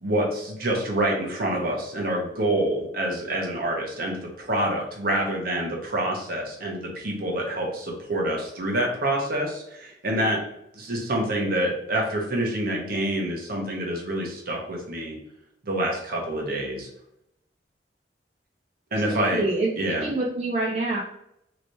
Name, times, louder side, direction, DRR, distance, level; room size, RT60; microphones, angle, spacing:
voice 1, 0.0-10.4 10.7-15.2 15.6-16.9 18.9-19.4 19.8-20.0, right 1 dB, 55° right, 0 dB, 0.9 m, -27 dB
voice 2, 19.1-19.7 20.0-21.0, right 2 dB, 35° right, -4 dB, 0.5 m, -26 dB
3.1 x 3.0 x 2.6 m, 0.76 s
head